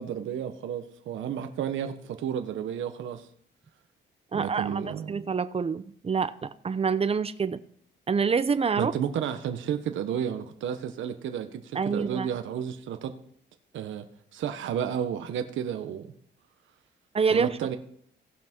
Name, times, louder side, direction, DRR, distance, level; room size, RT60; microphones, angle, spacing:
voice 1, 0.0-3.3 4.3-5.2 8.8-13.1 13.7-14.0 14.3-16.1 17.3-17.8, right 8 dB, 75° right, 7 dB, 1.1 m, -32 dB
voice 2, 4.3-7.6 8.1-8.9 11.7-12.3 17.1-17.6, right 5 dB, 30° right, 14 dB, 0.8 m, -27 dB
17.0 x 6.1 x 4.5 m, 0.65 s
cardioid pair, 90°, 20 cm